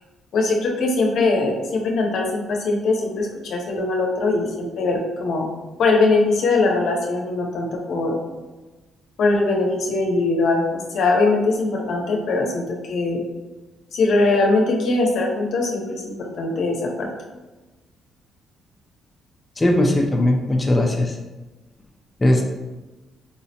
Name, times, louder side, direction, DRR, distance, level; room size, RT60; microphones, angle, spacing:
voice 1, 0.3-5.4 5.8-8.2 9.2-10.6 10.9-13.2 13.9-17.1, left 3 dB, 70° left, 0 dB, 0.7 m, -21 dB
voice 2, 19.6-21.1 22.2-22.4, left 1 dB, 20° left, 0 dB, 0.4 m, -18 dB
4.7 x 2.0 x 2.8 m, 1.2 s
cardioid pair, 90°, 0 cm